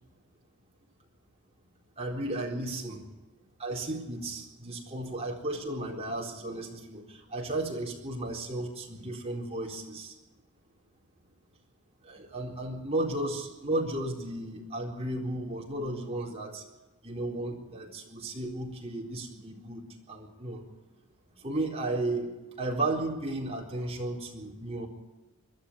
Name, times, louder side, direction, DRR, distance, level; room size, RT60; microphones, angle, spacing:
voice 1, 2.0-3.0 3.6-10.1 12.0-16.6 17.0-19.8 20.1-20.6 21.4-24.9, right 2 dB, 30° right, -1 dB, 4.1 m, -34 dB
22.0 x 12.5 x 9.3 m, 1.1 s
head